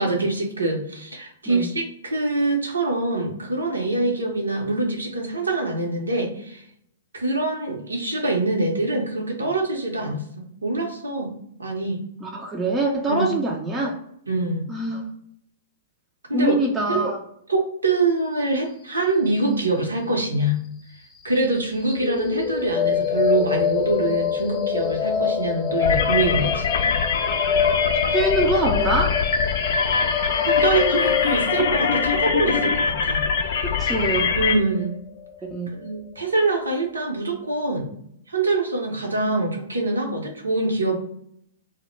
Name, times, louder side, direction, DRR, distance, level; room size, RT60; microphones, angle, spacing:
voice 1, 0.0-6.6 7.1-10.2 10.6-11.3 11.6-12.0 13.1-13.3 14.3-14.7 16.3-16.5 16.9-17.0 17.5-20.6 21.2-26.7 30.4-33.2 33.9-34.1 34.3-34.9 35.7-37.9 38.3-41.0, right 2 dB, 85° right, 1 dB, 0.7 m, -24 dB
voice 2, 12.2-14.0 14.7-15.1 16.3-17.2 28.1-29.2 33.6-34.3 35.5-35.7, right 2 dB, 15° right, -1 dB, 0.4 m, -24 dB
sound 1, 22.0-36.0, left 7 dB, 15° left, 0.7 m, -26 dB
sound 2, 25.8-34.5, left 5 dB, 60° left, 0.4 m, -23 dB
2.1 x 2.0 x 3.0 m, 0.70 s
figure-of-eight pair, 115°, 0 cm